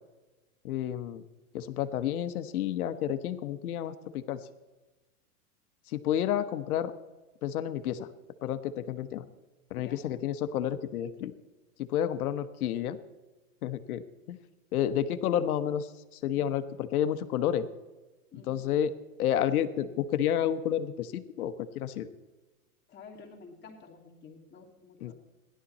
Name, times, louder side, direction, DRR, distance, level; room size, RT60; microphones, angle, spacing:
voice 1, 0.6-1.2 1.5-4.5 5.9-6.9 7.4-8.1 8.4-9.3 9.7-11.3 11.8-13.0 13.6-14.0 14.3-14.4 14.7-17.7 18.5-18.9 19.2-22.1 25.0-25.1, left 10 dB, 70° left, 11 dB, 1.2 m, -30 dB
voice 2, 18.3-18.8 22.9-25.1, left 5 dB, 25° left, -2 dB, 2.7 m, -50 dB
16.5 x 11.5 x 4.2 m, 1.1 s
hypercardioid pair, 120°, 45 cm